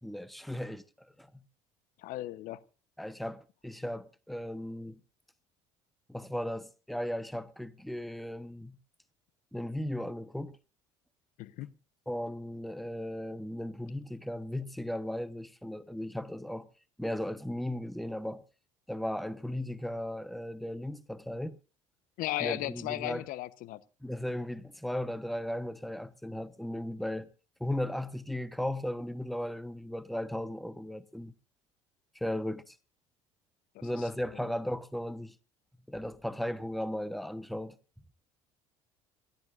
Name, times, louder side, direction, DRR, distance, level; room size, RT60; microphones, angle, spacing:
voice 1, 0.0-1.3 3.0-5.0 6.1-8.8 9.5-10.6 12.1-16.7 17.0-18.4 18.9-21.5 22.4-23.3 24.0-27.3 27.6-31.3 32.1-32.8 33.8-35.3 35.9-37.7, left 1 dB, ahead, 1.1 m, -36 dB
voice 2, 2.0-2.6 11.4-11.7 22.2-23.8 33.7-33.9 34.3-34.5, left 16 dB, 60° left, 0.9 m, -36 dB
27.5 x 12.0 x 2.6 m
hypercardioid pair, 60°, 16 cm